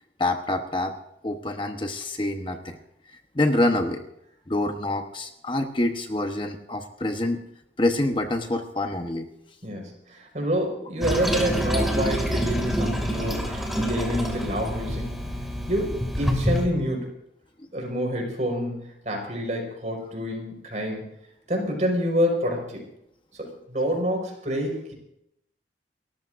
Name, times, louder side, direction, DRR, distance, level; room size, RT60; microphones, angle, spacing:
voice 1, 0.2-0.9 1.2-2.8 3.3-4.0 4.5-7.4 7.8-9.3, left 1 dB, 25° left, 5 dB, 1.0 m, -26 dB
voice 2, 9.6-15.1 15.7-17.1 17.7-21.1 21.5-22.8 23.3-24.9, equal, 40° right, 1 dB, 5.0 m, -27 dB
Toilet flush, 11.0-16.7, equal, ahead, 2.3 m, -27 dB
29.5 x 14.0 x 2.6 m, 0.78 s
head